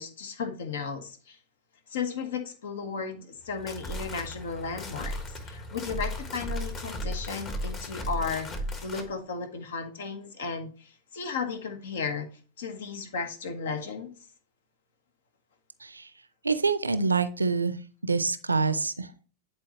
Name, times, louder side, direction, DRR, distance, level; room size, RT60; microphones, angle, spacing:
voice 1, 0.0-1.4 1.9-5.2 5.4-8.5 8.8-12.3 12.6-14.1, left 5 dB, 60° left, 8 dB, 1.2 m, -34 dB
sound 1, 3.4-9.1, equal, 30° left, 1.4 m, -35 dB
voice 2, 16.4-17.8 18.0-19.3, right 4 dB, 80° right, 13 dB, 0.5 m, -26 dB
10.5 x 4.5 x 3.0 m, 0.38 s
figure-of-eight pair, 90°, 0 cm